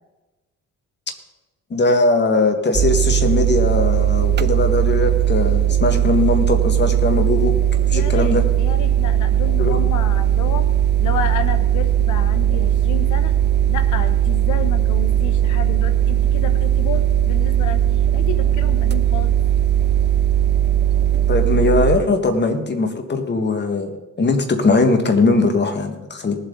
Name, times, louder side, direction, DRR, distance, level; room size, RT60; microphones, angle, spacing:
voice 1, 1.7-7.5 7.9-8.4 9.6-9.8 21.3-26.4, left 3 dB, 35° left, 6 dB, 1.9 m, -20 dB
sound 1, 2.7-22.0, right 11 dB, 35° right, 0.5 m, -18 dB
voice 2, 7.9-10.7 11.0-13.4 13.7-17.8 18.1-19.3, left 6 dB, 80° left, 9 dB, 1.5 m, -30 dB
19.5 x 7.9 x 4.0 m, 1.1 s
cardioid pair, 90°, 30 cm